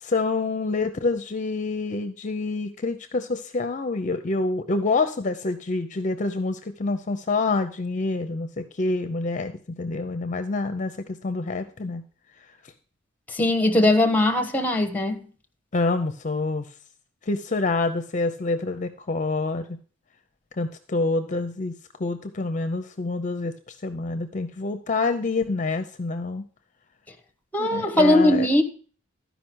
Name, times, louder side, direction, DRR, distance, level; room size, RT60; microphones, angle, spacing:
voice 1, 0.0-9.5 9.8-12.0 15.7-16.6 17.3-19.8 20.6-21.7 22.0-26.4 27.6-28.5, left 3 dB, 40° left, 0.6 m, -27 dB
voice 2, 13.3-15.3 27.5-28.6, left 1 dB, 10° left, 1.1 m, -20 dB
12.5 x 5.2 x 6.2 m
head